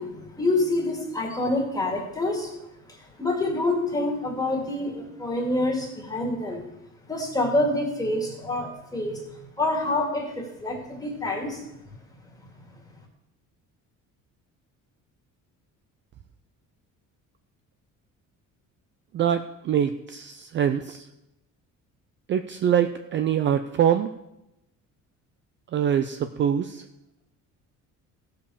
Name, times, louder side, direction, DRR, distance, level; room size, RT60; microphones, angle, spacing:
voice 1, 0.0-2.5 2.9-6.6 7.1-9.2 9.6-11.7, left 2 dB, 10° left, 0 dB, 2.2 m, -27 dB
voice 2, 19.1-21.1 22.3-24.1 25.7-26.8, right 9 dB, 35° right, 8 dB, 0.4 m, -24 dB
15.5 x 5.2 x 7.0 m, 0.89 s
cardioid pair, 170°, 32 cm